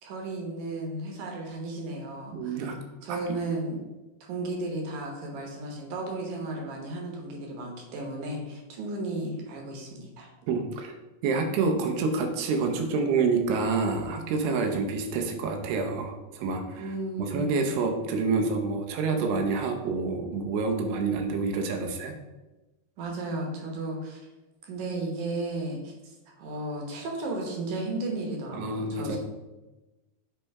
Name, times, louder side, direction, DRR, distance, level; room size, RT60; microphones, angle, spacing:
voice 1, 0.0-2.6 3.0-3.8 4.2-10.3 16.8-17.7 23.0-24.2 24.6-25.9 26.4-29.2, right 2 dB, 65° right, 0 dB, 2.2 m, -34 dB
voice 2, 2.3-2.7 3.1-3.2 10.5-10.9 11.2-16.9 17.2-22.1 28.5-29.2, right 4 dB, 85° right, 3 dB, 2.8 m, -27 dB
8.2 x 3.3 x 4.6 m, 1.1 s
omnidirectional pair, 4.5 m